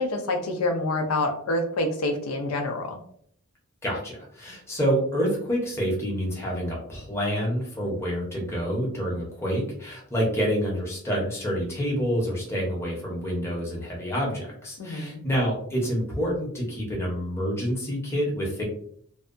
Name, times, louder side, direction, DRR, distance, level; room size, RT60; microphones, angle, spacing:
voice 1, 0.0-3.0 14.8-15.2, left 2 dB, 75° left, 5 dB, 0.4 m, -27 dB
voice 2, 3.8-18.6, equal, 10° left, -3 dB, 0.7 m, -28 dB
2.6 x 2.2 x 2.5 m, 0.62 s
head